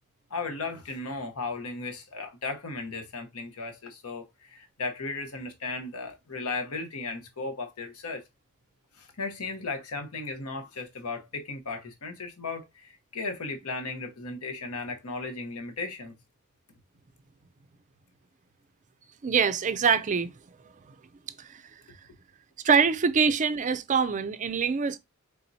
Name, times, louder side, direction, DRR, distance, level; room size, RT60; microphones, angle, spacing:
voice 1, 0.3-8.2 9.0-16.1, left 3 dB, 80° left, 1.0 m, -36 dB
voice 2, 19.2-20.3 21.4-21.6 22.6-25.0, right 6 dB, 35° right, 0.4 m, -24 dB
4.2 x 3.6 x 2.7 m
head